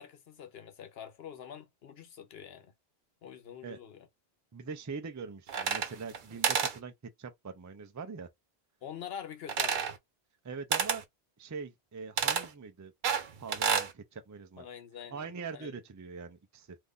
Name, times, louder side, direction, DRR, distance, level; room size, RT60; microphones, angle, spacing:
voice 1, 0.0-2.7 3.2-4.1 8.8-9.9 14.6-15.8, left 8 dB, 70° left, 0.9 m, -45 dB
voice 2, 4.5-6.9 7.2-8.3 10.4-11.0 11.4-12.9 13.4-14.7 15.1-16.8, right 5 dB, 30° right, 0.3 m, -42 dB
sound 1, 5.5-6.2 6.4-6.8 9.5-10.0 10.7-11.0 12.2-12.5 13.0-13.9, right 7 dB, 55° right, 0.7 m, -29 dB
2.6 x 2.5 x 3.6 m
omnidirectional pair, 1.1 m